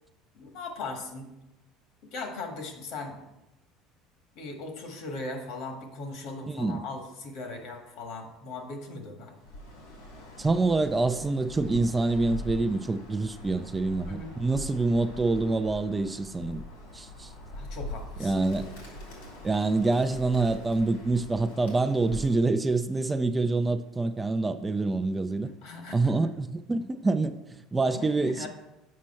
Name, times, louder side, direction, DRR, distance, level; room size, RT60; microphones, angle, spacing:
voice 1, 0.3-1.4 2.1-3.2 4.3-9.3 14.0-14.3 17.5-18.5 25.6-26.1 27.9-28.5, left 3 dB, 65° left, 4 dB, 1.6 m, -39 dB
voice 2, 6.5-6.8 10.4-16.6 16.9-17.3 18.2-18.7 19.4-25.5 25.9-28.5, right 3 dB, 15° right, 9 dB, 0.4 m, -26 dB
Bird, 9.4-22.5, left 1 dB, 90° left, 2.5 m, -42 dB
7.4 x 5.2 x 4.3 m, 0.94 s
supercardioid pair, 110°, 0 cm